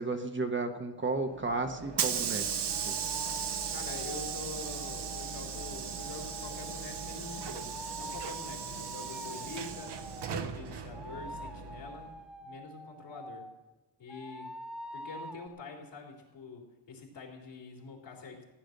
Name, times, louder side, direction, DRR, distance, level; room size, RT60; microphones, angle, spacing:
voice 1, 0.0-2.4 2.9-3.0, right 3 dB, 25° right, 6 dB, 1.1 m, -33 dB
Hiss / Sliding door, 1.3-12.1, right 7 dB, 65° right, 1.1 m, -37 dB
sound 1, 2.7-10.3 10.9-13.6 14.1-15.5, equal, ahead, 0.8 m, -46 dB
voice 2, 3.7-12.1 12.4-13.5 14.0-14.5 14.9-18.4, left 4 dB, 70° left, 0 dB, 3.8 m, -45 dB
16.0 x 10.5 x 6.6 m, 1.2 s
wide cardioid pair, 165°, 44 cm